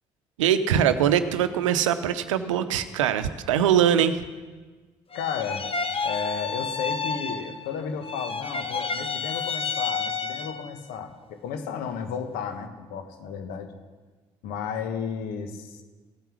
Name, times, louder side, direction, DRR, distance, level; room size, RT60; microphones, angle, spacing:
voice 1, 0.4-4.2, right 9 dB, 90° right, 12 dB, 0.7 m, -22 dB
voice 2, 5.1-5.7 6.0-13.7 14.4-15.8, left 7 dB, 75° left, 7 dB, 1.4 m, -33 dB
sound 1, 5.1-7.8 8.0-10.8, left 4 dB, 35° left, 1.2 m, -30 dB
15.5 x 9.2 x 6.2 m, 1.3 s
hypercardioid pair, 45°, 16 cm